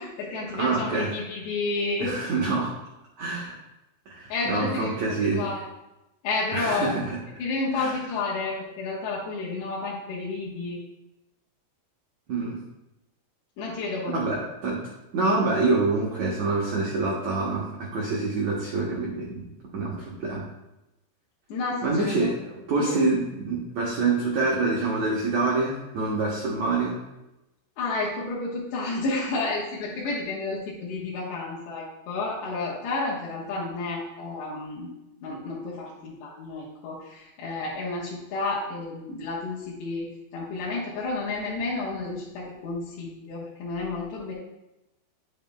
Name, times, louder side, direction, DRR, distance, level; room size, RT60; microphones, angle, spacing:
voice 1, 0.0-2.2 4.3-5.7 6.2-6.9 7.4-10.8 13.6-14.3 21.5-22.3 22.8-23.0 27.8-34.9 35.2-40.1 40.3-44.3, left 3 dB, 80° left, -7 dB, 3.4 m, -31 dB
voice 2, 0.5-1.1 2.0-2.7 3.2-3.5 4.0-5.4 6.5-7.2 7.7-7.9 12.3-12.6 14.1-14.8 15.1-19.5 19.7-20.4 21.8-27.0, right 3 dB, 80° right, -4 dB, 1.6 m, -26 dB
9.4 x 7.5 x 2.2 m, 0.94 s
omnidirectional pair, 4.9 m